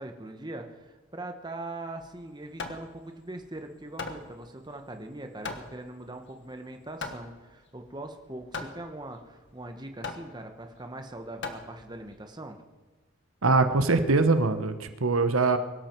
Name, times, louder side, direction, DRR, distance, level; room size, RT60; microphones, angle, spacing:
voice 1, 0.0-12.6, right 2 dB, 20° right, 5 dB, 1.2 m, -41 dB
Hammer, 2.0-12.2, left 3 dB, 60° left, 1.5 m, -41 dB
voice 2, 13.4-15.6, right 3 dB, 85° right, 10 dB, 1.1 m, -23 dB
23.5 x 12.5 x 4.6 m, 1.3 s
head